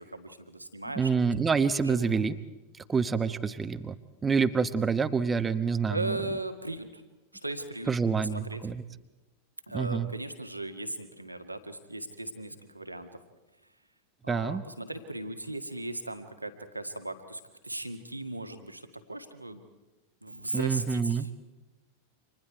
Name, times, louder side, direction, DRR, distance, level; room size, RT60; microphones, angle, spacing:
voice 1, 0.0-2.1 5.9-7.0 7.4-7.9 8.2-8.6 9.7-13.1 14.2-19.6 20.2-21.3, right 2 dB, 85° right, 7 dB, 1.8 m, -38 dB
voice 2, 1.0-2.4 2.9-4.0 4.2-6.2 7.9-8.8 9.7-10.1 14.3-14.6 20.5-21.3, right 5 dB, 15° right, 11 dB, 1.0 m, -27 dB
30.0 x 26.0 x 4.7 m, 1.1 s
figure-of-eight pair, 90°, 0 cm